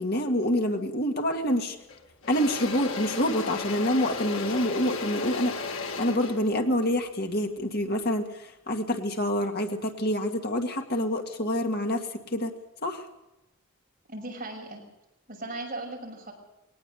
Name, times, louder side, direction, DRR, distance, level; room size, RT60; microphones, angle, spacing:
voice 1, 0.0-1.8 2.3-5.5 6.0-12.5 12.8-13.1, left 1 dB, 50° left, 4 dB, 2.0 m, -27 dB
Engine / Drill, 1.3-1.5 1.9-8.0, left 4 dB, 80° left, 2.5 m, -35 dB
voice 2, 14.1-14.8 15.3-16.3, right 2 dB, 40° right, 0 dB, 6.3 m, -37 dB
21.0 x 18.5 x 7.0 m, 0.94 s
head